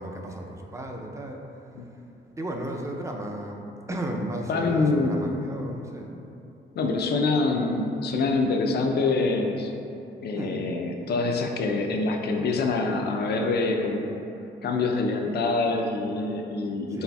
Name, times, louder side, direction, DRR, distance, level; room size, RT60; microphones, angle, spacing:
voice 1, 0.0-1.4 2.4-6.2 10.3-10.6 16.9-17.0, right 1 dB, 15° right, 1 dB, 0.4 m, -34 dB
voice 2, 4.5-5.2 6.8-9.7 10.2-14.2 14.6-17.0, left 3 dB, 60° left, 2 dB, 0.4 m, -25 dB
4.1 x 3.8 x 2.3 m, 2.8 s
cardioid pair, 85°, 19 cm